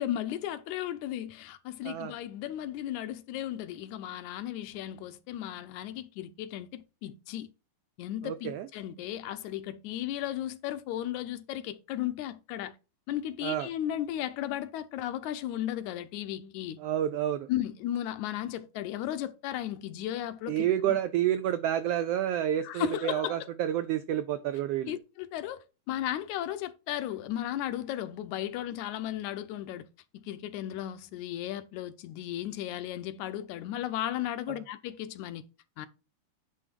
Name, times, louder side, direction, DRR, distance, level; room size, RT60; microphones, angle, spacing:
voice 1, 0.0-7.5 8.0-12.8 13.1-16.8 17.5-21.0 22.6-23.5 24.9-29.9 30.1-35.4 35.8-35.9, left 12 dB, 85° left, 2.1 m, -35 dB
voice 2, 8.2-8.7 13.4-13.7 16.8-17.5 20.5-24.9, right 11 dB, 85° right, 1.3 m, -29 dB
9.7 x 3.6 x 5.2 m
omnidirectional pair, 3.3 m